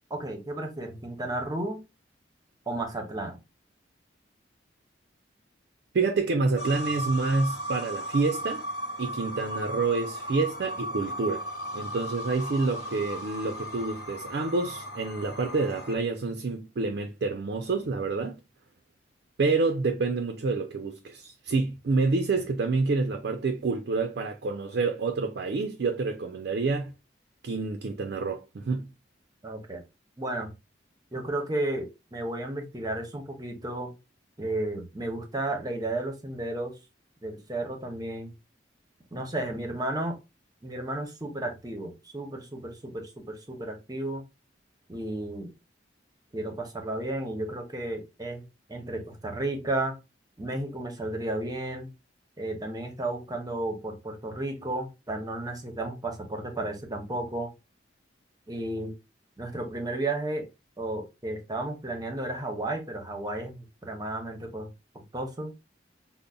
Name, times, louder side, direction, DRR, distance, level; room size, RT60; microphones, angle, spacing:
voice 1, 0.1-1.8 2.7-3.4 29.4-29.8 30.2-30.5 31.1-33.9 34.4-36.7 37.2-38.3 39.1-40.2 40.6-44.2 44.9-45.5 46.3-48.4 48.7-50.0 50.4-51.9 52.4-57.5 58.5-58.9 59.4-60.5 60.8-65.5, right 2 dB, 20° right, 0.7 m, -33 dB
voice 2, 5.9-8.7 9.0-11.5 11.7-18.4 19.4-26.9 27.4-28.9, right 3 dB, 60° right, 0.4 m, -28 dB
sound 1, 6.6-16.0, equal, 60° left, 0.9 m, -36 dB
5.1 x 2.0 x 2.3 m
head